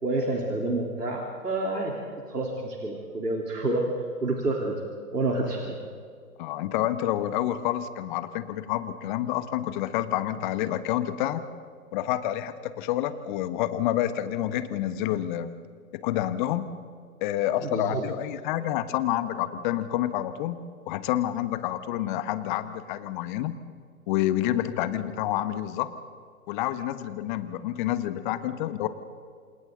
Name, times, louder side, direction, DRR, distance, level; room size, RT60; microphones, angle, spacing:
voice 1, 0.0-2.0 2.3-4.7 5.1-5.8 17.7-18.0, right 2 dB, 90° right, -1 dB, 3.8 m, -28 dB
voice 2, 6.4-11.4 11.9-15.5 15.9-16.7 17.2-20.6 20.9-23.5 24.1-25.9 26.5-28.9, left 12 dB, 30° left, 12 dB, 1.4 m, -28 dB
28.0 x 28.0 x 3.9 m, 2.1 s
figure-of-eight pair, 125°, 46 cm